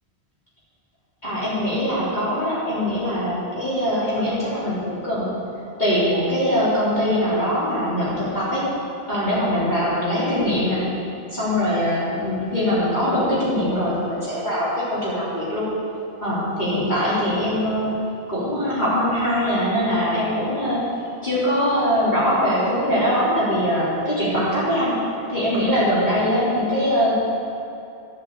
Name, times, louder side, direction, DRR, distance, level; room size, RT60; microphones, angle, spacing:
voice 1, 1.2-5.4 5.8-8.6 9.1-10.8 11.3-15.7 16.2-17.9 18.3-20.8 21.2-24.9 25.3-27.1, equal, 45° left, -11 dB, 4.5 m, -22 dB
12.5 x 9.7 x 8.2 m, 2.7 s
omnidirectional pair, 1.1 m